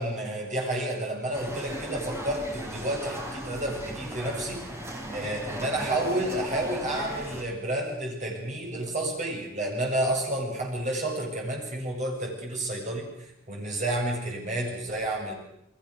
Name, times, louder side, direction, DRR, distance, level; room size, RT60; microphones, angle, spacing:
voice 1, 0.0-4.6 5.1-15.3, right 1 dB, 35° right, 0 dB, 7.7 m, -30 dB
sound 1, 1.3-7.4, equal, 15° right, 4.6 m, -37 dB
30.0 x 20.5 x 6.8 m, 0.81 s
head